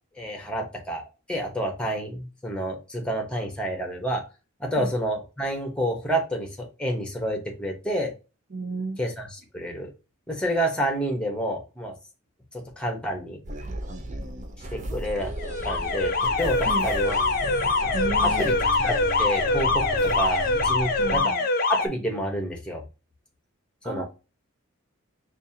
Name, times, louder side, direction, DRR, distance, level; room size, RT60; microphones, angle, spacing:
voice 1, 0.2-1.0 1.3-4.2 4.6-8.1 9.0-9.9 10.3-11.9 12.5-13.4 14.7-15.3 15.6-17.2 18.2-18.5 18.8-21.3 21.7-22.8 23.8-24.0, right 1 dB, 5° left, 2 dB, 0.9 m, -29 dB
voice 2, 8.5-9.0 16.6-16.9 17.9-18.6 21.0-21.4 23.8-24.0, right 2 dB, 55° right, -1 dB, 0.9 m, -33 dB
sound 1, 13.4-21.2, right 1 dB, 35° right, 0.5 m, -34 dB
Alarm, 15.4-21.9, left 3 dB, 45° left, 0.6 m, -24 dB
5.3 x 2.5 x 2.7 m, 0.30 s
head